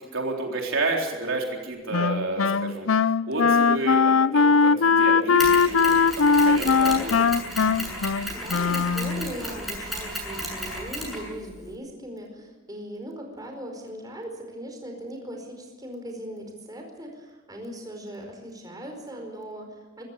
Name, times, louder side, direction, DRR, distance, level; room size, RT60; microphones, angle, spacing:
voice 1, 0.0-2.9 3.3-7.2, right 2 dB, 85° right, 1 dB, 3.9 m, -30 dB
Wind instrument woodwind instrument, 1.9-9.3, left 5 dB, 80° left, 0.6 m, -20 dB
Mechanisms, 5.4-11.7, equal, ahead, 7.6 m, -34 dB
voice 2, 8.0-20.0, equal, 20° right, 3 dB, 4.8 m, -39 dB
24.5 x 15.0 x 8.5 m, 1.3 s
head